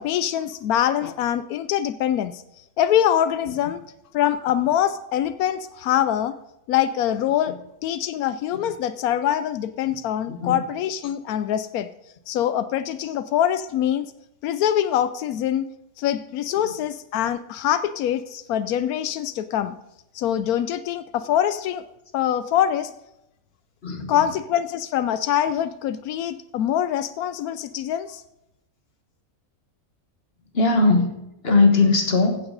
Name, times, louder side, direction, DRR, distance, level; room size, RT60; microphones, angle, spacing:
voice 1, 0.0-2.4 2.8-3.8 4.1-6.4 6.7-7.6 7.8-11.9 12.3-14.1 14.4-15.7 16.0-19.7 20.1-21.8 22.1-22.9 24.1-28.2, left 10 dB, 85° left, 13 dB, 1.1 m, -24 dB
voice 2, 23.8-24.2 30.5-31.2 31.4-32.4, left 3 dB, 45° left, 4 dB, 1.7 m, -19 dB
15.5 x 8.8 x 4.0 m, 0.86 s
omnidirectional pair, 1.5 m